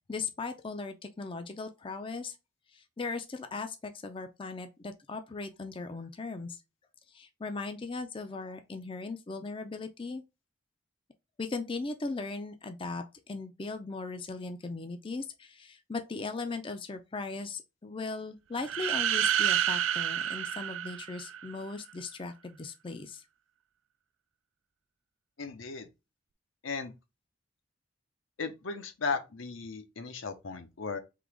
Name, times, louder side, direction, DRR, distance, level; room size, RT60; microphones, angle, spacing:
voice 1, 0.1-2.4 2.7-6.6 7.1-10.2 11.4-23.2, left 3 dB, 25° left, 0.4 m, -38 dB
sound 1, 18.6-21.6, right 10 dB, 80° right, 0.4 m, -29 dB
voice 2, 25.4-25.9 26.6-26.9 28.4-31.0, left 4 dB, 80° left, 0.8 m, -36 dB
3.8 x 2.9 x 4.7 m
head